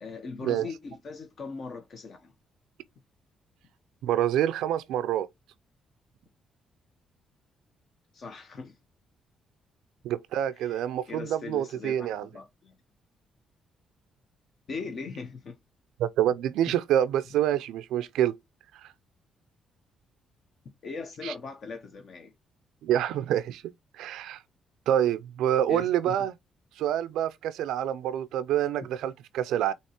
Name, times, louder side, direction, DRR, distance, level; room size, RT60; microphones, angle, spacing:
voice 1, 0.0-2.3 8.1-8.7 10.6-10.8 11.1-12.7 14.7-15.6 16.7-16.8 20.8-22.3 25.7-26.2, left 4 dB, 55° left, 0.8 m, -39 dB
voice 2, 4.0-5.3 10.0-12.3 16.0-18.4 18.8-18.9 21.2-21.3 22.8-23.6 24.0-24.4 24.9-26.3 26.8-29.7, right 11 dB, 85° right, 0.3 m, -27 dB
6.3 x 2.9 x 2.9 m
cardioid pair, 90°, 0 cm